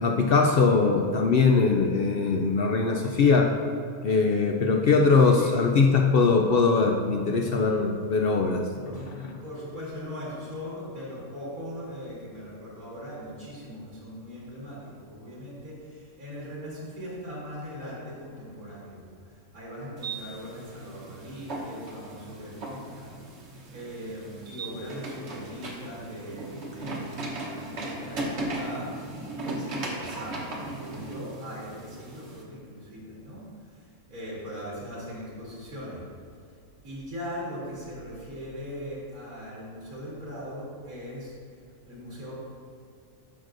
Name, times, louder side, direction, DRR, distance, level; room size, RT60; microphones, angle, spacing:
voice 1, 0.0-3.5 4.0-8.6, left 4 dB, 65° left, 2 dB, 0.5 m, -21 dB
voice 2, 5.1-5.7 8.8-9.0 9.4-19.1 19.5-23.1 23.7-28.9 29.4-33.4 33.7-36.0 36.8-41.3 41.8-42.3, equal, 75° right, -7 dB, 2.3 m, -40 dB
sound 1, 20.0-32.4, right 2 dB, 50° right, 1.3 m, -37 dB
12.5 x 6.3 x 2.6 m, 2.3 s
omnidirectional pair, 1.5 m